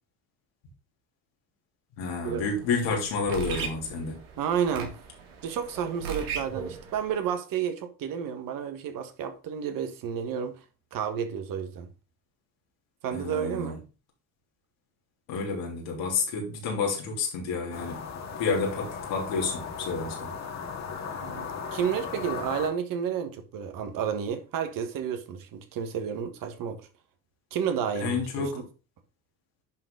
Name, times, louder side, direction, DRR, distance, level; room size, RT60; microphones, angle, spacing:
voice 1, 2.0-4.2 6.6-6.7 13.1-13.8 15.3-18.0 18.4-20.3 28.0-28.6, left 4 dB, 80° left, 3.2 m, -30 dB
sound 1, 2.2-7.2, right 7 dB, 85° right, 2.4 m, -38 dB
voice 2, 4.4-5.0 5.4-10.6 10.9-11.9 13.0-13.8 21.2-26.8 27.5-28.6, right 8 dB, 65° right, 1.5 m, -31 dB
sound 2, 17.7-22.7, left 6 dB, 45° left, 2.0 m, -37 dB
10.5 x 4.1 x 3.9 m
supercardioid pair, 75°, 37 cm